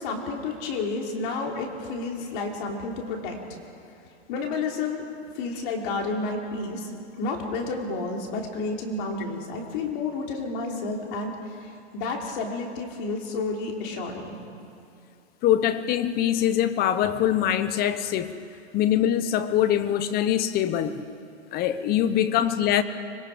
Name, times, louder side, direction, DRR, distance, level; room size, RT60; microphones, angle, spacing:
voice 1, 0.0-3.4 4.3-5.0 5.4-6.9 7.2-14.4, left 3 dB, 50° left, 1 dB, 3.5 m, -31 dB
voice 2, 15.4-18.3 18.7-21.0 21.5-22.8, left 10 dB, 25° left, 12 dB, 1.0 m, -23 dB
25.0 x 21.5 x 5.1 m, 2.5 s
hypercardioid pair, 135°, 33 cm